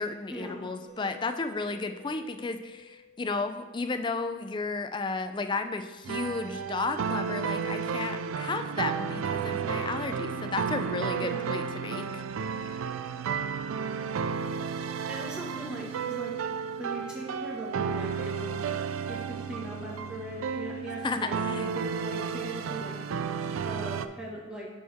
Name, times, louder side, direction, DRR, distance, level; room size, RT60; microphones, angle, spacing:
voice 1, 0.0-12.9 21.0-21.7, left 3 dB, 25° left, 8 dB, 0.3 m, -33 dB
Mallet percussion, 0.9-4.6, left 8 dB, 40° right, 2.2 m, -53 dB
sound 1, 6.0-24.1, right 6 dB, 85° right, 0.4 m, -32 dB
voice 2, 15.1-16.3 16.8-18.6 19.1-23.0 23.6-24.7, right 1 dB, 5° right, -5 dB, 1.4 m, -39 dB
8.5 x 4.7 x 3.5 m, 1.2 s
head